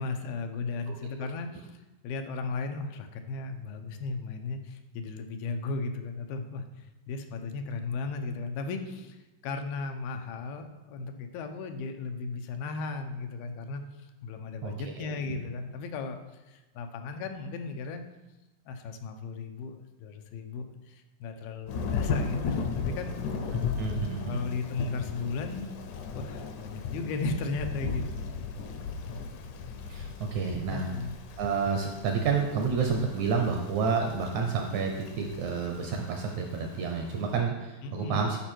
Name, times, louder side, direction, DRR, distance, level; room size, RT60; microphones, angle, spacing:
voice 1, 0.0-16.2 16.5-18.0 18.7-23.2 24.3-25.7 26.1-28.1 30.7-31.2 37.8-38.3, left 4 dB, 90° left, 6 dB, 2.7 m, -36 dB
voice 2, 14.6-15.1 23.8-24.4 29.9-30.9 31.4-38.4, right 5 dB, 75° right, 2 dB, 1.7 m, -29 dB
Thunder / Rain, 21.7-37.3, left 5 dB, 75° left, 1.9 m, -36 dB
11.5 x 5.2 x 4.5 m, 1.1 s
omnidirectional pair, 4.2 m